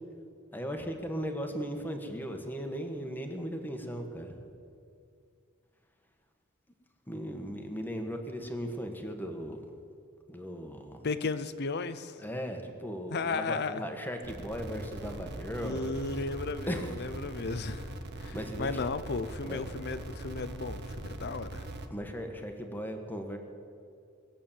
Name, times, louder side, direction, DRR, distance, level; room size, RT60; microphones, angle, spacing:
voice 1, 0.5-4.3 7.1-9.6 10.3-11.1 12.2-15.9 16.7-16.9 18.3-18.7 19.5-19.6 21.9-23.4, equal, 10° left, 4 dB, 1.5 m, -37 dB
voice 2, 11.0-12.2 13.1-13.9 15.6-21.6, left 4 dB, 55° left, 13 dB, 0.7 m, -35 dB
sound 1, 14.2-21.9, right 1 dB, 55° right, 1.2 m, -41 dB
20.5 x 8.6 x 7.4 m, 2.4 s
head